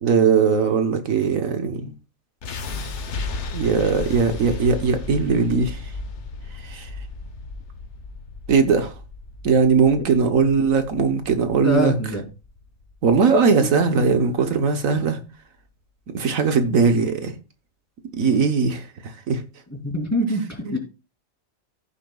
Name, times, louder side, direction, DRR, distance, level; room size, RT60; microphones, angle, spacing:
voice 1, 0.0-1.9 3.5-5.9 6.5-6.9 8.5-8.9 9.4-11.9 13.0-15.2 16.1-17.3 18.1-19.4 20.6-20.8, right 5 dB, 75° right, 1.5 m, -20 dB
sound 1, 2.4-14.5, left 3 dB, 55° left, 1.3 m, -35 dB
voice 2, 11.6-12.2 13.6-14.2 19.8-20.8, equal, 10° left, 2.8 m, -25 dB
15.0 x 7.1 x 2.3 m
omnidirectional pair, 1.4 m